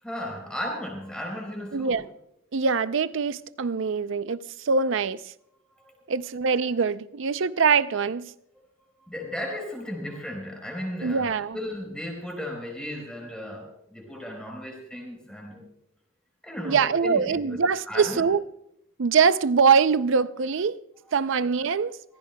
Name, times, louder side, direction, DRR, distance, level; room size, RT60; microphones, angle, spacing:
voice 1, 0.0-2.0 5.8-5.9 9.1-15.7 16.4-17.6 17.9-18.2 21.0-21.1, left 1 dB, 5° left, 4.0 m, -35 dB
voice 2, 1.7-2.0 2.5-5.2 6.1-8.3 11.0-11.6 16.6-18.4 19.0-20.8 21.1-22.0, right 5 dB, 60° right, 0.5 m, -23 dB
25.5 x 15.5 x 2.3 m
head